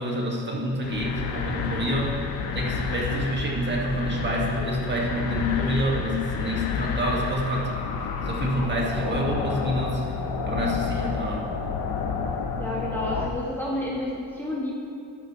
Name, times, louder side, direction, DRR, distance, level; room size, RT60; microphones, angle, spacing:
voice 1, 0.0-10.2 10.5-11.5, equal, 25° right, -3 dB, 2.3 m, -28 dB
sound 1, 0.8-13.3, left 5 dB, 60° left, 1.1 m, -30 dB
voice 2, 12.6-14.7, left 1 dB, 5° left, -6 dB, 1.6 m, -30 dB
14.0 x 10.0 x 3.4 m, 2.5 s
cardioid pair, 115°, 42 cm